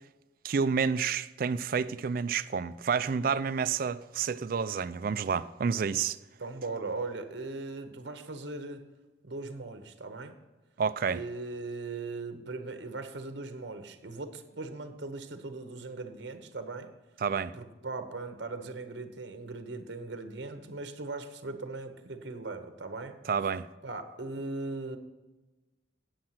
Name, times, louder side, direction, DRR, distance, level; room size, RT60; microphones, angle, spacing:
voice 1, 0.4-6.2 10.8-11.2 17.2-17.5 23.3-23.7, right 6 dB, 45° right, 0.3 m, -29 dB
voice 2, 6.4-8.9 9.2-10.3 11.1-16.9 17.5-23.2 23.8-25.0, right 3 dB, 65° right, 0.9 m, -39 dB
8.7 x 7.7 x 5.7 m
head